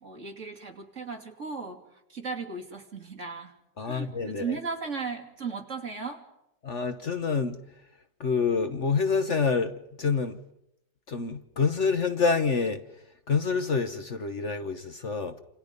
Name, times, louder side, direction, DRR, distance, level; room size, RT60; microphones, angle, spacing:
voice 1, 0.0-1.8 2.1-3.5 3.8-6.2, right 5 dB, 40° right, 3.0 m, -36 dB
voice 2, 3.8-4.6 6.6-7.9 8.2-10.4 11.1-15.4, left 5 dB, 45° left, 1.2 m, -27 dB
28.0 x 27.5 x 5.4 m
omnidirectional pair, 2.0 m